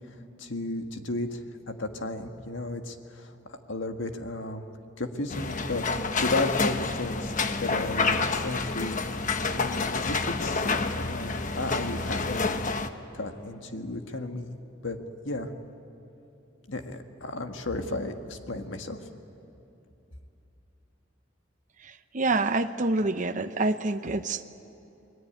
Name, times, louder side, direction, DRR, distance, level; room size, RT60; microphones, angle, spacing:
voice 1, 0.4-4.6 5.0-7.3 7.6-9.0 9.5-10.6 10.9-12.7 13.1-14.6 14.8-15.0 15.2-15.5 16.7-19.0, left 2 dB, 75° left, 5 dB, 1.9 m, -34 dB
sound 1, 5.3-12.9, left 4 dB, 40° left, 1.1 m, -28 dB
voice 2, 21.8-24.4, right 2 dB, 40° right, 8 dB, 0.8 m, -27 dB
29.5 x 22.0 x 9.1 m, 2.9 s
head